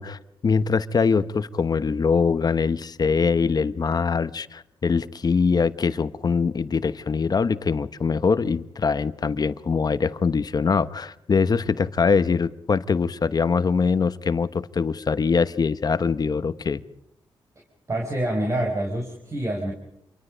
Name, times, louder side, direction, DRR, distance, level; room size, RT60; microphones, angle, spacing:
voice 1, 0.0-16.8, left 5 dB, 45° left, 13 dB, 1.1 m, -23 dB
voice 2, 17.9-19.7, right 1 dB, 35° right, 1 dB, 4.9 m, -26 dB
28.0 x 24.0 x 5.2 m, 0.79 s
cardioid pair, 75°, 9 cm